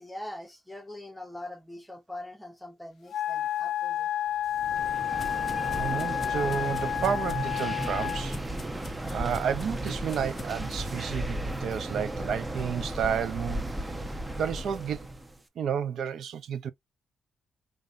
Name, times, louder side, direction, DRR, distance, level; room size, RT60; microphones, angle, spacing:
voice 1, 0.0-4.1 12.8-12.9, left 1 dB, ahead, 1.0 m, -42 dB
Wind instrument woodwind instrument, 3.1-8.3, left 10 dB, 65° left, 0.4 m, -30 dB
sound 1, 4.3-10.8, left 5 dB, 35° left, 0.7 m, -49 dB
sound 2, 4.5-15.4, right 1 dB, 15° right, 0.7 m, -35 dB
voice 2, 5.8-8.4 9.1-13.7 14.3-15.1 15.6-16.7, right 8 dB, 65° right, 0.6 m, -31 dB
3.8 x 3.3 x 2.5 m
cardioid pair, 110°, 0 cm